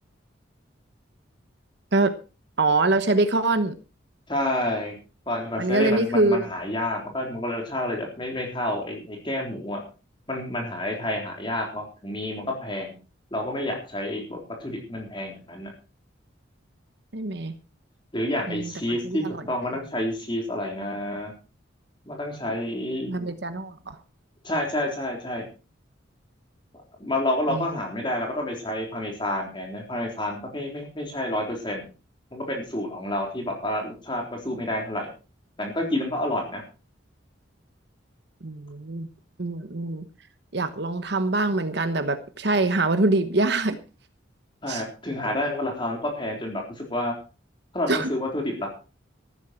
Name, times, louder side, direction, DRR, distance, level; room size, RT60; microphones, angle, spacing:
voice 1, 2.6-3.7 5.6-6.5 17.1-17.5 18.5-18.7 19.0-19.4 23.1-24.0 27.5-27.7 38.4-39.1 39.4-40.1 40.5-43.8 44.7-44.8 47.9-48.1, right 2 dB, 55° right, 10 dB, 1.1 m, -24 dB
voice 2, 4.3-4.9 5.3-9.8 10.3-12.9 13.3-15.7 18.1-21.3 22.1-23.3 24.4-25.5 27.0-31.8 32.3-35.1 35.6-36.6 44.6-47.1 47.7-48.7, left 1 dB, 25° left, 1 dB, 3.8 m, -29 dB
14.5 x 13.0 x 4.5 m, 0.33 s
head